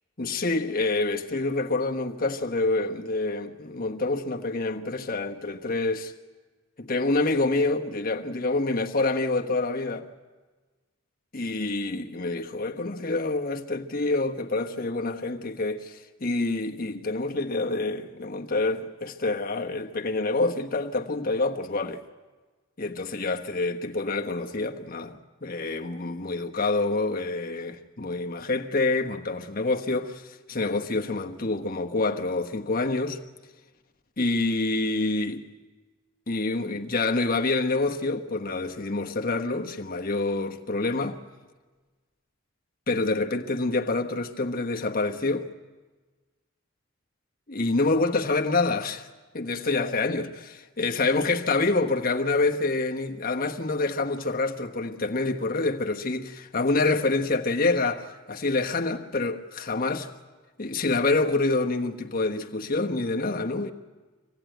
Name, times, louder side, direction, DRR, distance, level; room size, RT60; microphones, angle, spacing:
voice 1, 0.2-6.1 6.8-10.1 11.3-22.0 22.8-33.2 34.2-35.4 36.3-41.2 42.9-45.5 47.5-49.1 49.3-60.1 60.6-63.7, left 3 dB, 45° left, 1.3 m, -27 dB
25.5 x 17.5 x 9.2 m
head